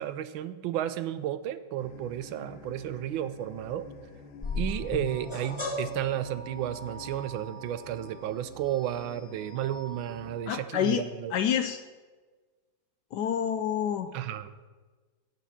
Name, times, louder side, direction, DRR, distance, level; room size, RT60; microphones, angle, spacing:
voice 1, 0.0-3.9 4.6-11.3 14.1-14.7, right 11 dB, 80° right, 13 dB, 1.4 m, -33 dB
sound 1, 1.8-10.4, left 4 dB, 90° left, 1.7 m, -49 dB
sound 2, 4.4-10.6, left 2 dB, 20° left, 1.0 m, -39 dB
voice 2, 10.5-11.0 11.3-11.8 13.1-14.2, left 9 dB, 70° left, 9 dB, 1.0 m, -28 dB
17.0 x 6.1 x 5.8 m, 1.4 s
omnidirectional pair, 2.2 m